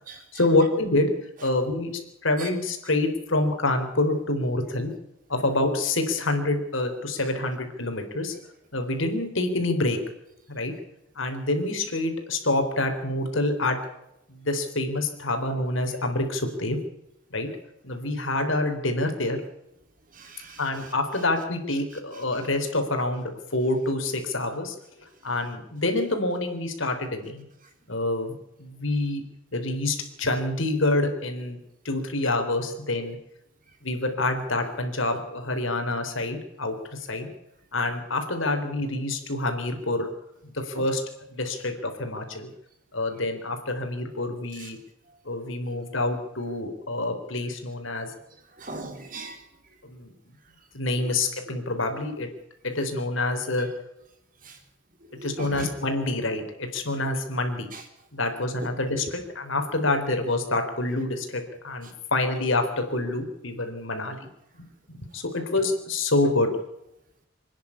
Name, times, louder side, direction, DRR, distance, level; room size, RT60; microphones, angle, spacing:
voice 1, 0.3-1.1 1.4-1.9 2.2-4.9 5.3-8.4 8.7-10.0 10.5-10.7 11.2-13.8 14.3-16.8 17.3-17.5 17.8-19.4 20.6-24.8 25.2-27.4 27.9-29.2 29.5-31.6 31.9-33.2 33.8-37.3 37.7-40.1 40.4-41.0 41.3-42.5 42.9-44.8 45.3-48.1 49.8-50.1 50.7-52.3 52.6-53.7 55.2-57.7 58.1-64.3 64.6-66.5, left 2 dB, 75° left, 5 dB, 3.7 m, -27 dB
voice 2, 20.2-20.6 44.6-44.7 48.6-49.4 54.4-54.5 55.2-55.7 57.7-57.8, right 2 dB, 40° right, 5 dB, 3.4 m, -38 dB
26.0 x 10.5 x 9.9 m, 0.84 s
head